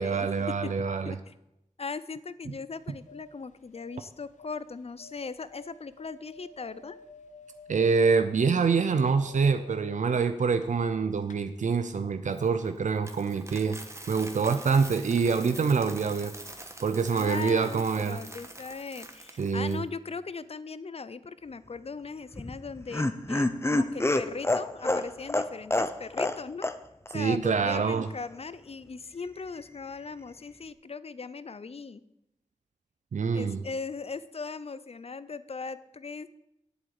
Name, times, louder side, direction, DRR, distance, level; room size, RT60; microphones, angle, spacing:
voice 1, 0.0-1.1 7.7-13.8 14.1-16.3 16.8-18.2 19.4-19.8 27.1-28.1 33.1-33.6, right 5 dB, 85° right, 9 dB, 0.6 m, -26 dB
voice 2, 1.8-7.0 17.1-26.7 27.1-32.0 33.3-36.3, left 4 dB, 55° left, 16 dB, 0.6 m, -39 dB
sound 1, 2.8-10.9 11.2-11.4, left 1 dB, 90° left, 1.1 m, -51 dB
Coin (dropping), 12.3-19.8, right 2 dB, 25° right, 1.3 m, -45 dB
Laughter, 22.3-26.4 26.6-26.8 27.1-27.2, left 2 dB, 20° left, 0.8 m, -27 dB
8.0 x 7.9 x 8.8 m, 0.84 s
wide cardioid pair, 65°, 12 cm